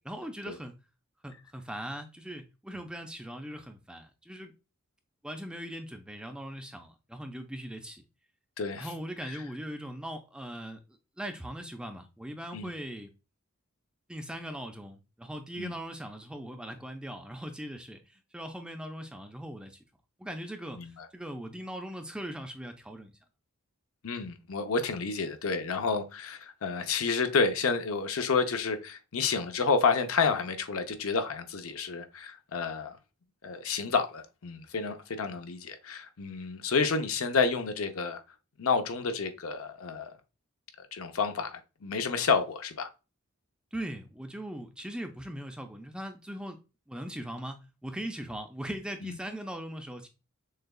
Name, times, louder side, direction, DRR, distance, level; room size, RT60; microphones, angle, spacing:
voice 1, 0.0-0.7 1.2-4.5 5.2-8.0 8.8-10.8 11.2-13.1 14.1-19.8 20.2-23.1 43.7-46.6 46.9-50.1, equal, 5° right, 0.4 m, -40 dB
voice 2, 8.6-8.9 9.3-9.4 12.5-12.7 15.6-15.7 20.7-21.1 24.0-33.0 33.4-38.2 38.6-40.1 40.8-42.9 49.0-49.1, left 5 dB, 70° left, 0.6 m, -30 dB
6.4 x 2.3 x 2.3 m
head